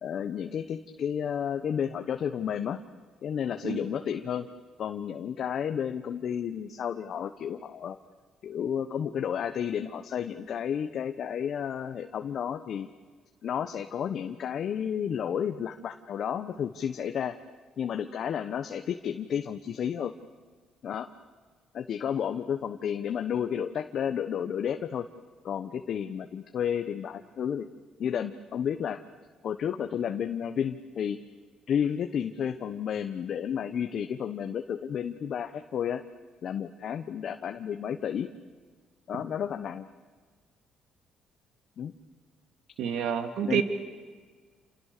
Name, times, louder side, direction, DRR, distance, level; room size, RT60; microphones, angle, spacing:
voice 1, 0.0-2.8 3.2-4.5 4.8-8.0 8.4-12.9 13.4-17.4 17.8-20.1 20.8-21.1 21.7-25.1 25.4-27.7 28.0-29.0 29.4-31.2 31.7-36.0 36.4-38.3 39.1-39.9 41.8-41.9 43.4-43.6, left 8 dB, 60° left, 7 dB, 1.2 m, -31 dB
voice 2, 42.8-43.6, right 8 dB, 80° right, 6 dB, 2.4 m, -28 dB
28.5 x 28.0 x 6.8 m, 1.5 s
cardioid pair, 85°, 0 cm